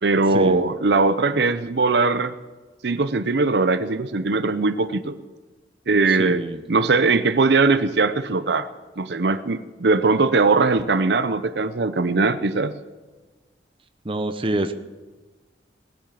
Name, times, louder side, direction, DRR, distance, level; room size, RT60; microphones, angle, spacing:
voice 1, 0.0-2.3 2.8-5.2 5.9-6.4 6.7-8.7 9.0-12.7, right 3 dB, 75° right, 12 dB, 0.7 m, -20 dB
voice 2, 6.1-6.6 14.0-14.7, right 1 dB, 30° right, 9 dB, 0.8 m, -26 dB
19.0 x 8.8 x 7.6 m, 1.3 s
head